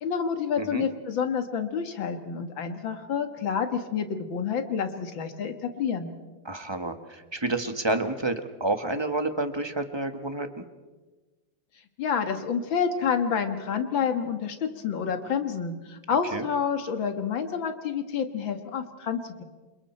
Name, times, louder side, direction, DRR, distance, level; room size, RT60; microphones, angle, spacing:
voice 1, 0.0-6.1 12.0-19.4, left 6 dB, 80° left, 7 dB, 2.4 m, -28 dB
voice 2, 6.4-10.7 16.3-16.5, right 2 dB, 15° right, 7 dB, 1.2 m, -29 dB
29.0 x 26.5 x 4.4 m, 1.3 s
omnidirectional pair, 2.1 m